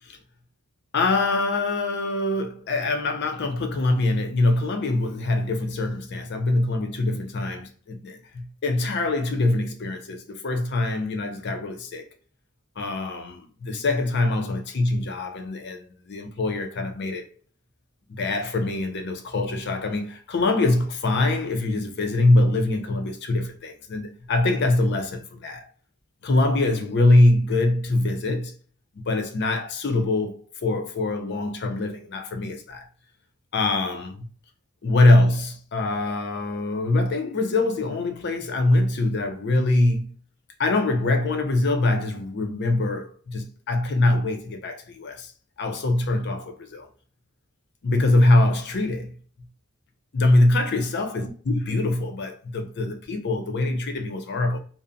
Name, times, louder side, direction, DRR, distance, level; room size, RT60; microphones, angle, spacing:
voice 1, 0.9-12.1 12.8-17.2 18.1-25.7 26.2-28.5 29.1-32.8 33.5-34.2 34.8-40.1 40.6-45.3 45.6-46.9 47.8-49.1 50.1-54.6, left 2 dB, 50° left, 0.5 m, -23 dB
2.5 x 2.0 x 2.5 m
head